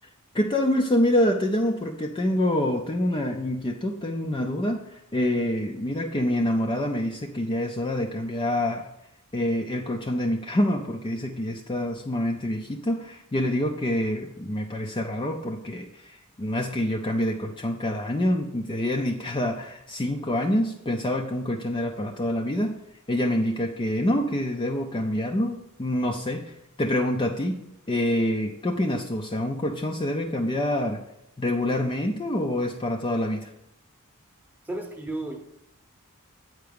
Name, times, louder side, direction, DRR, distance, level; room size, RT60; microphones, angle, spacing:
voice 1, 0.3-8.9 9.3-22.8 23.1-31.0 31.4-33.5, left 1 dB, 20° left, 2 dB, 0.4 m, -26 dB
voice 2, 34.6-35.4, right 2 dB, 10° right, 3 dB, 0.9 m, -33 dB
8.1 x 4.6 x 5.1 m, 0.82 s
head